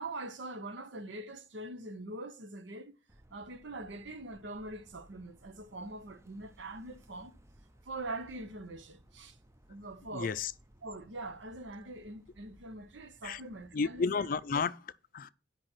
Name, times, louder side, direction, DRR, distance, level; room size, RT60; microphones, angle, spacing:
voice 1, 0.0-3.0 3.3-7.4 7.9-9.4 9.7-10.4 10.8-14.2, right 2 dB, 75° right, 0.8 m, -43 dB
sound 1, 3.1-14.6, right 1 dB, 15° right, 0.5 m, -61 dB
voice 2, 10.1-10.5 13.2-13.4 13.7-15.3, left 5 dB, 45° left, 0.4 m, -32 dB
9.0 x 5.2 x 6.0 m
head